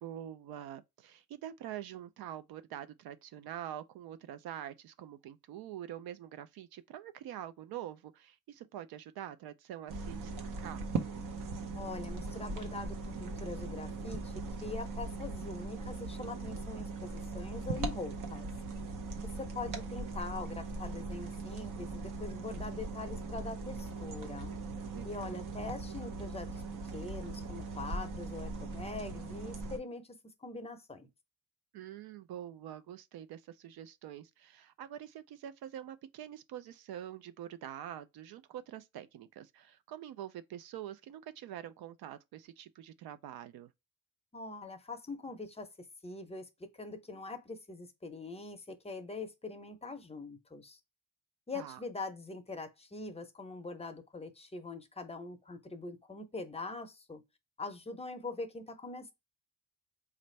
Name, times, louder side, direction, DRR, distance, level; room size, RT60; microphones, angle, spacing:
voice 1, 0.0-10.9 24.9-25.5 31.7-43.7 51.5-51.8, right 11 dB, 75° right, 0.5 m, -45 dB
sound 1, 9.9-29.8, right 3 dB, 60° right, 0.9 m, -40 dB
voice 2, 11.7-18.5 19.4-24.5 25.0-26.6 26.9-31.1 44.3-45.7 46.0-50.8 51.5-57.2 57.6-59.1, left 3 dB, 15° left, 0.6 m, -43 dB
4.2 x 2.5 x 3.1 m
cardioid pair, 120°, 37 cm